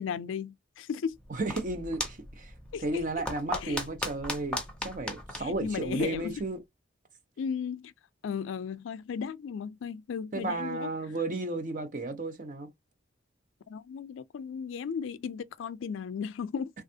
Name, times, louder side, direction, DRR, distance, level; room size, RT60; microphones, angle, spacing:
voice 1, 0.0-1.2 2.7-2.8 3.6-3.8 5.4-6.4 7.4-7.9 8.2-10.9 13.7-16.7, left 6 dB, 85° left, 0.4 m, -35 dB
sound 1, 1.1-6.5, left 1 dB, 5° left, 0.6 m, -38 dB
voice 2, 1.3-2.5 2.8-6.6 10.3-12.7, right 2 dB, 45° right, 0.7 m, -33 dB
3.3 x 2.4 x 2.7 m
head